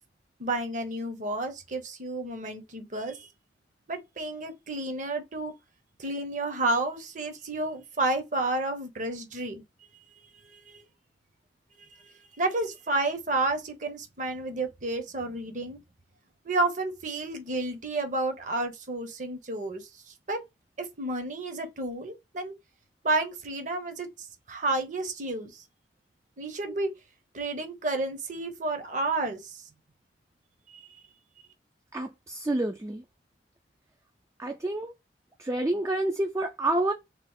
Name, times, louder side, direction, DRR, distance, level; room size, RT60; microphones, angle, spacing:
voice 1, 0.4-3.3 3.9-5.5 6.0-9.6 10.4-10.9 12.0-15.8 16.4-20.4 20.8-22.5 23.0-25.6 26.4-26.9 27.3-29.6, right 2 dB, 45° right, 0.8 m, -31 dB
voice 2, 31.9-33.0 34.4-34.9 35.4-36.9, right 2 dB, 15° right, 0.3 m, -28 dB
3.0 x 2.4 x 3.5 m
head